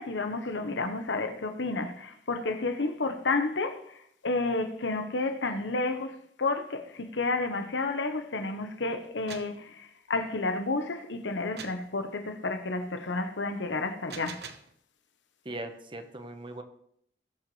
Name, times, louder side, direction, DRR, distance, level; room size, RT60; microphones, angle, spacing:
voice 1, 0.0-14.4, left 3 dB, 90° left, 1.1 m, -31 dB
sound 1, 9.0-9.6 11.6-11.9 13.9-14.7, right 6 dB, 65° right, 1.1 m, -43 dB
voice 2, 15.4-16.6, right 2 dB, 25° right, 1.1 m, -39 dB
21.0 x 7.0 x 3.2 m
head